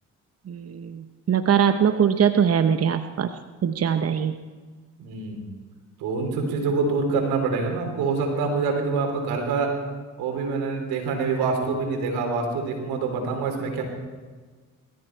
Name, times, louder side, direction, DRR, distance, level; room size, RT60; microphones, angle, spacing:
voice 1, 0.5-3.3 3.6-4.3, right 8 dB, 45° right, 9 dB, 0.9 m, -22 dB
voice 2, 5.0-5.4 6.0-9.7 10.2-13.8, right 4 dB, 85° right, 3 dB, 3.5 m, -26 dB
21.5 x 14.0 x 4.6 m, 1.4 s
supercardioid pair, 60°, 36 cm